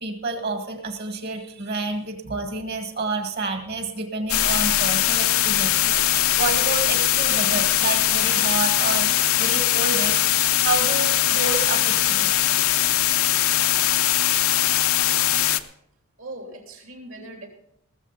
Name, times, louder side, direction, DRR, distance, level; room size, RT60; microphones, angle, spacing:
voice 1, 0.0-10.2 10.6-12.3, right 3 dB, 45° right, 6 dB, 1.9 m, -29 dB
sound 1, 4.3-15.6, left 13 dB, 75° left, 0.7 m, -21 dB
voice 2, 16.2-17.5, right 1 dB, 65° right, 2 dB, 3.3 m, -39 dB
19.0 x 7.4 x 5.7 m, 0.75 s
head